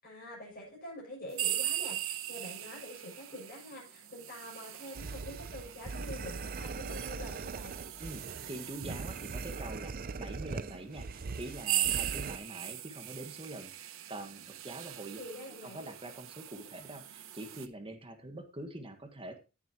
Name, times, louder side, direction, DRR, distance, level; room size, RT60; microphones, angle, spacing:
voice 1, 0.0-7.8 15.2-15.9, left 1 dB, 45° left, -4 dB, 6.7 m, -46 dB
sound 1, 1.3-9.8 10.5-10.6 11.3-17.7, right 12 dB, 75° right, 0.8 m, -39 dB
sound 2, 4.9-12.4, right 4 dB, 45° right, 0.5 m, -41 dB
voice 2, 8.0-15.2 15.6-19.4, right 1 dB, 25° right, 6 dB, 1.6 m, -45 dB
17.0 x 7.0 x 3.0 m, 0.31 s
head